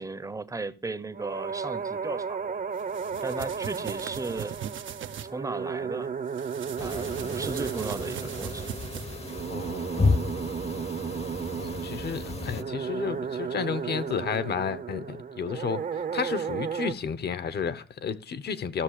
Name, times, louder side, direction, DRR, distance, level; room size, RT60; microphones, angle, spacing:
voice 1, 0.0-2.6 3.2-4.6 5.3-6.1 6.8-8.7, right 3 dB, 15° right, 0.8 m, -35 dB
sound 1, 1.1-16.9, right 6 dB, 45° right, 0.9 m, -34 dB
sound 2, 2.8-5.3 6.3-9.4, right 9 dB, 70° right, 0.8 m, -40 dB
sound 3, 6.8-12.6, left 4 dB, 30° left, 0.9 m, -32 dB
voice 2, 9.5-10.2 11.6-18.8, left 6 dB, 50° left, 1.0 m, -32 dB
14.0 x 6.7 x 4.8 m
cardioid pair, 110°, 21 cm